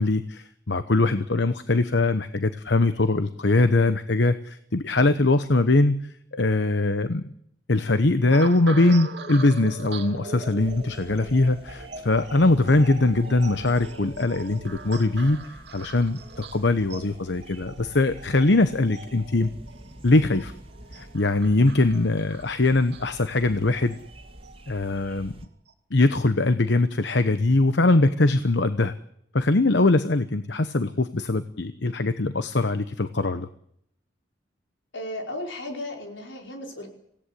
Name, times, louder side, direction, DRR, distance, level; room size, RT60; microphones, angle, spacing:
voice 1, 0.0-6.0 6.3-7.2 7.7-19.5 20.0-20.5 20.9-24.0 24.7-25.3 25.9-28.9 29.3-33.5, left 2 dB, 70° left, 11 dB, 1.0 m, -22 dB
sound 1, 8.3-24.8 25.4-25.7, right 3 dB, 65° right, 2.2 m, -42 dB
sound 2, 10.6-25.5, right 1 dB, 30° right, 2.3 m, -47 dB
voice 2, 34.9-36.9, left 1 dB, 85° left, 2 dB, 5.0 m, -35 dB
26.5 x 17.0 x 8.4 m, 0.73 s
head